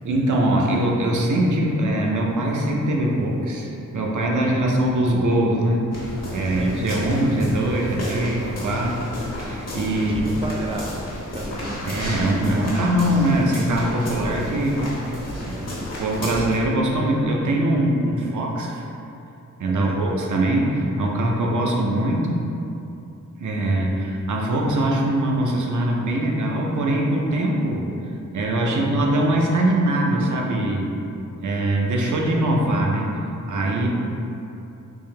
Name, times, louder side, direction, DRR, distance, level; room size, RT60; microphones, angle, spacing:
voice 1, 0.0-5.8 6.3-8.9 9.3-10.2 11.8-15.0 15.4-15.5 16.0-18.8 19.6-22.4 23.4-27.8 28.3-30.9 31.4-33.1 33.5-33.9, right 1 dB, 70° right, -1 dB, 0.6 m, -22 dB
sound 1, 5.9-16.6, left 1 dB, 55° left, 0.9 m, -32 dB
voice 2, 10.0-11.0 11.3-11.8 15.5-15.9 19.7-20.0 28.6-28.9, right 2 dB, 20° right, 0 dB, 0.4 m, -34 dB
3.5 x 2.7 x 3.2 m, 2.8 s
wide cardioid pair, 110°, 32 cm